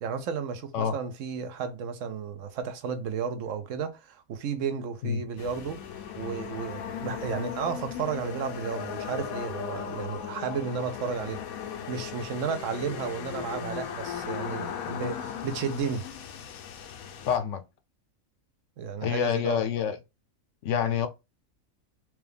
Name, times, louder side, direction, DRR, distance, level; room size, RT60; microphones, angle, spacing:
voice 1, 0.0-5.8 6.2-11.4 11.7-16.1 18.8-19.6, right 6 dB, 70° right, 0.9 m, -33 dB
sound 1, 5.4-17.4, left 8 dB, 90° left, 1.1 m, -37 dB
voice 2, 17.2-17.6 19.0-20.0 20.6-21.1, left 8 dB, 70° left, 0.9 m, -27 dB
4.6 x 2.2 x 3.3 m
omnidirectional pair, 1.4 m